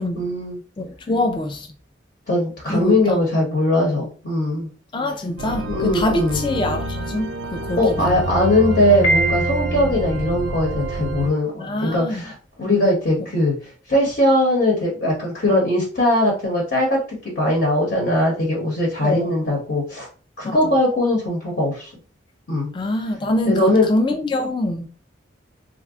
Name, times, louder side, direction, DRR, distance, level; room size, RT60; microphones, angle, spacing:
voice 1, 0.0-0.6 2.3-4.7 5.7-6.4 7.8-13.5 13.9-17.0 17.4-20.1 20.4-21.9 22.5-22.7 23.5-23.8, left 1 dB, 55° left, 1.0 m, -20 dB
voice 2, 0.8-1.7 2.7-3.2 4.9-8.2 11.6-12.2 19.0-19.4 20.6-20.7 22.7-24.9, left 1 dB, 25° left, 0.3 m, -24 dB
sound 1, 5.4-11.3, right 2 dB, 70° right, 0.4 m, -27 dB
Piano, 9.0-10.1, right 2 dB, 90° left, 1.5 m, -23 dB
2.5 x 2.2 x 3.5 m
head